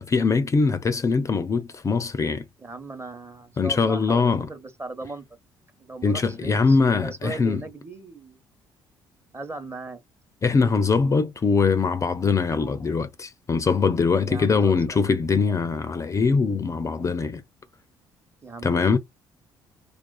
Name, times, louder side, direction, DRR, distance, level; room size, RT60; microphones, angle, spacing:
voice 1, 0.0-2.4 3.6-4.5 6.0-7.6 10.4-17.4 18.6-19.0, left 4 dB, 30° left, 0.4 m, -22 dB
voice 2, 2.6-5.2 5.8-8.4 9.3-10.0 14.2-15.1 18.4-19.0, right 3 dB, 25° right, 0.9 m, -38 dB
2.4 x 2.4 x 2.3 m
hypercardioid pair, 60°, 10 cm